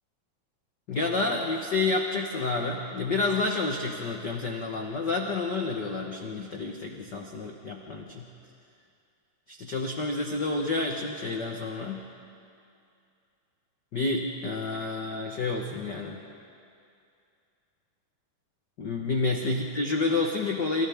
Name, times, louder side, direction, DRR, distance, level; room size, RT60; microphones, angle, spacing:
voice 1, 0.9-8.3 9.5-12.0 13.9-16.2 18.8-20.9, left 3 dB, 85° left, 1 dB, 0.9 m, -29 dB
29.0 x 28.5 x 3.6 m, 2.5 s
omnidirectional pair, 3.9 m